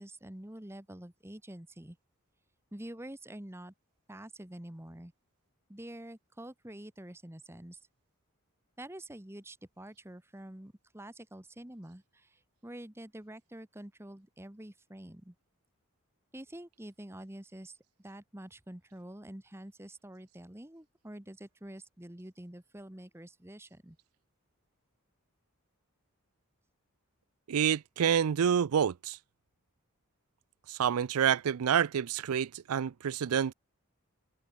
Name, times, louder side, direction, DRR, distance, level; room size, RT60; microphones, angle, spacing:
voice 1, 0.0-2.0 2.7-3.7 4.1-5.1 5.7-7.8 8.8-15.3 16.3-24.0, right 1 dB, 10° right, 1.1 m, -47 dB
voice 2, 27.5-29.2 30.7-33.5, right 8 dB, 85° right, 0.4 m, -28 dB
head